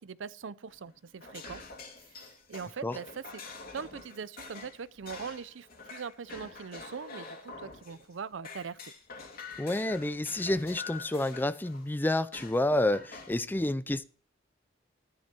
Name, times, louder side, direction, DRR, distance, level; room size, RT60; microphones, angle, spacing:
voice 1, 0.0-1.6 2.0-3.4 3.7-8.8, right 6 dB, 80° right, 0.5 m, -41 dB
sound 1, 0.7-8.1 8.4-11.9 12.3-13.4, left 4 dB, 55° left, 2.8 m, -46 dB
voice 2, 9.6-14.0, left 1 dB, 10° left, 0.4 m, -29 dB
13.5 x 10.5 x 2.9 m
head